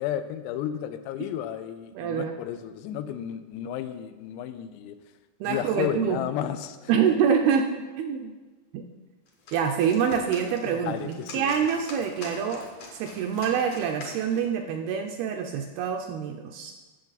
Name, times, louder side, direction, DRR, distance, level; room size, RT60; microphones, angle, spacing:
voice 1, 0.0-5.0 5.4-6.9 10.7-11.5, left 10 dB, 85° left, 10 dB, 2.8 m, -33 dB
voice 2, 1.9-2.4 5.4-6.2 6.9-8.3 8.7-8.8 9.5-12.6 12.9-16.7, right 7 dB, 80° right, 4 dB, 2.3 m, -26 dB
sound 1, 9.3-14.5, left 3 dB, 60° left, 1.7 m, -43 dB
16.5 x 6.9 x 4.0 m, 1.2 s
omnidirectional pair, 4.9 m